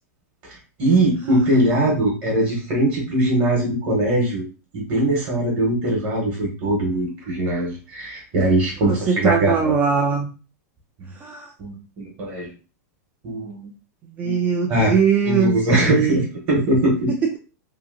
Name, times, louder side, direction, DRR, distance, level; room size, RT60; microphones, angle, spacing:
voice 1, 0.4-4.4 4.7-9.7 11.6-12.5 13.2-13.7 14.2-14.4 14.7-14.9 15.2-17.1, right 1 dB, 35° right, -2 dB, 1.0 m, -21 dB
voice 2, 8.9-10.3 11.1-11.5 14.0-16.3, right 6 dB, 20° right, 2 dB, 0.3 m, -21 dB
2.8 x 2.7 x 2.6 m, 0.34 s
supercardioid pair, 160°, 9 cm